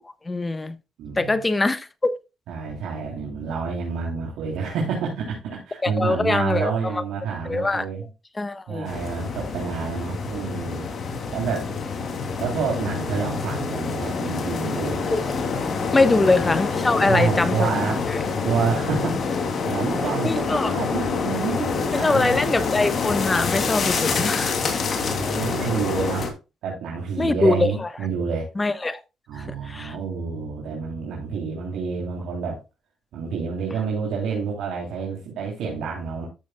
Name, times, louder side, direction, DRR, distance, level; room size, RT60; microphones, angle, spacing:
voice 1, 0.3-0.7 1.2-2.1 5.8-6.7 7.5-7.8 8.4-8.9 15.1-15.2 15.9-17.7 18.1-18.2 20.2-20.7 21.9-24.6 27.2-27.7 28.6-29.0 29.7-29.9, left 3 dB, 20° left, 1.2 m, -22 dB
voice 2, 1.0-1.4 2.5-8.1 8.7-10.9 11.3-11.7 12.4-15.2 15.9-16.2 16.9-18.1 18.4-22.6 23.9-26.3 26.6-28.5 29.3-32.6 33.1-36.3, right 5 dB, 85° right, 3.3 m, -29 dB
sound 1, 8.8-26.3, left 5 dB, 55° left, 2.8 m, -27 dB
13.5 x 7.1 x 2.3 m
cardioid pair, 90°, 0 cm